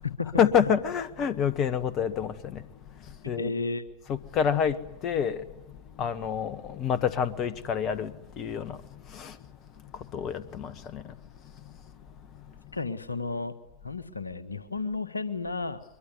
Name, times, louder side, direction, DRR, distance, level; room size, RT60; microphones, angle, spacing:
voice 1, 0.4-2.3 3.3-3.5 4.1-4.8 5.0-5.4 6.0-8.1 8.4-8.8 9.2-9.3 10.1-11.0, left 8 dB, 35° left, 1.6 m, -27 dB
voice 2, 3.2-3.8 12.7-13.6 13.8-15.8, left 3 dB, 80° left, 1.6 m, -32 dB
23.5 x 23.0 x 9.6 m
figure-of-eight pair, 90°, 0 cm